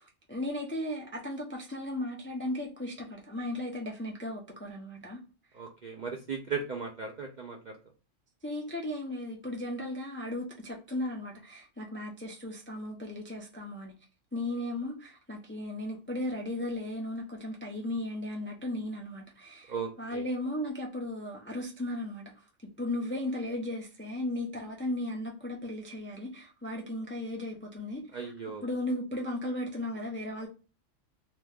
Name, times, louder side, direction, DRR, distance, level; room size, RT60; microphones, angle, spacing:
voice 1, 0.0-5.2 8.4-13.9 14.3-22.4 22.8-28.3 28.6-30.5, left 1 dB, 20° left, 0.3 m, -36 dB
voice 2, 5.5-7.8 19.7-20.2 28.1-28.6, right 5 dB, 60° right, 0.4 m, -37 dB
2.9 x 2.3 x 3.4 m
omnidirectional pair, 1.3 m